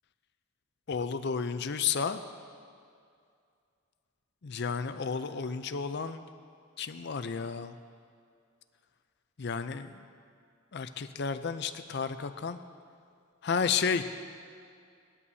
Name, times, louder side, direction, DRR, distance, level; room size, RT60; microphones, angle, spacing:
voice 1, 0.9-2.2 4.4-6.2 6.8-7.7 9.4-10.0 10.7-12.6 13.4-14.0, left 6 dB, 55° left, 10 dB, 0.5 m, -32 dB
18.0 x 11.0 x 2.8 m, 2.3 s
head